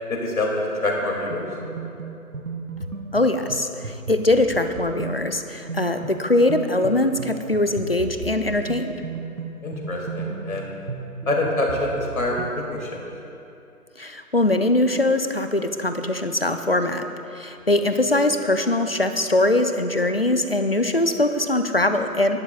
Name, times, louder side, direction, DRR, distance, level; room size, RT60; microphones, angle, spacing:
voice 1, 0.1-1.4 9.6-10.7 11.3-13.1, left 2 dB, 65° left, -1 dB, 2.6 m, -25 dB
sound 1, 1.3-12.6, right 4 dB, 65° right, 2.0 m, -35 dB
voice 2, 3.1-8.9 14.0-17.0 17.3-22.4, left 2 dB, 40° left, 8 dB, 0.5 m, -22 dB
18.0 x 11.5 x 2.4 m, 2.7 s
hypercardioid pair, 170°, 45 cm